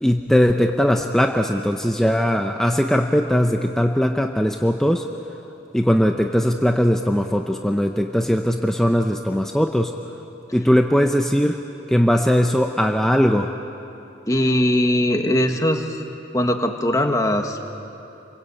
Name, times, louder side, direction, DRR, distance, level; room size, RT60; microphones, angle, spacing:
voice 1, 0.0-5.1 5.7-9.9 10.5-11.6 11.9-13.5, equal, 5° left, 4 dB, 0.7 m, -19 dB
voice 2, 14.3-16.0 16.3-17.6, left 1 dB, 20° left, 4 dB, 1.7 m, -20 dB
29.5 x 23.0 x 8.5 m, 2.9 s
head